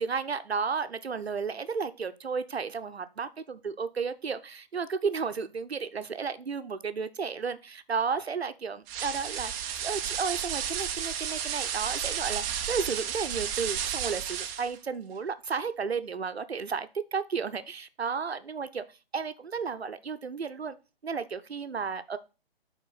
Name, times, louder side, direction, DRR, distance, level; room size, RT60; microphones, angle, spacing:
voice 1, 0.0-18.8 19.1-20.8 21.0-22.2, right 5 dB, 90° right, 11 dB, 0.7 m, -33 dB
sound 1, 8.9-14.8, right 8 dB, 20° right, 0.6 m, -32 dB
9.4 x 3.8 x 4.0 m, 0.31 s
figure-of-eight pair, 130°, 31 cm